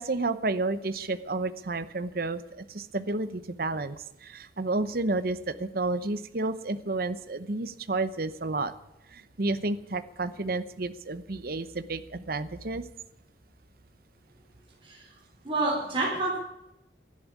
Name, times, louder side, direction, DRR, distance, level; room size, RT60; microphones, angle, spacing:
voice 1, 0.0-3.9 4.2-8.7 9.4-12.8, right 2 dB, 55° right, 12 dB, 0.9 m, -31 dB
voice 2, 15.4-16.4, right 2 dB, 30° right, -4 dB, 3.6 m, -28 dB
13.0 x 11.0 x 9.5 m, 0.92 s
head